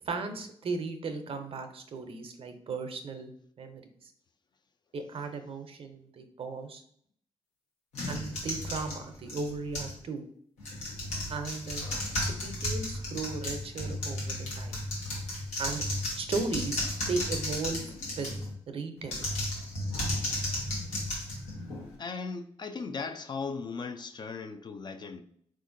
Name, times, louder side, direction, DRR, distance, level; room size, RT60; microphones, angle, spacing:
voice 1, 0.0-3.3 3.6-4.1 4.9-6.8 8.1-10.2 11.3-11.9 12.3-14.8 15.6-15.8 16.2-17.9 18.2-18.3 18.7-19.2, right 4 dB, 55° right, 0.5 m, -36 dB
sound 1, 7.9-10.0 10.6-18.5 19.0-21.9, left 1 dB, 90° left, 0.9 m, -34 dB
voice 2, 22.0-25.2, left 4 dB, 40° left, 0.4 m, -37 dB
3.6 x 2.5 x 2.5 m
supercardioid pair, 55°, 11 cm